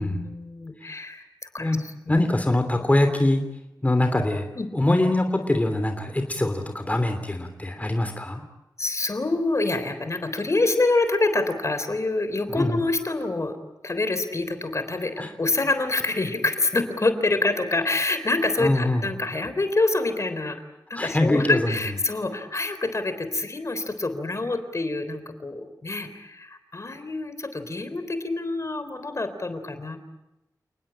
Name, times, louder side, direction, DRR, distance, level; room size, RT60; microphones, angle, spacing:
voice 1, 0.0-1.8 2.1-2.2 4.6-4.7 8.8-13.6 13.8-20.6 20.9-30.0, left 2 dB, 45° left, 10 dB, 3.7 m, -26 dB
voice 2, 2.1-3.4 3.8-4.5 4.7-8.4 12.5-12.8 15.2-15.3 18.6-19.1 20.9-21.8, left 1 dB, 20° left, 6 dB, 3.0 m, -23 dB
29.5 x 19.5 x 8.8 m, 0.95 s
wide cardioid pair, 75°, 7 cm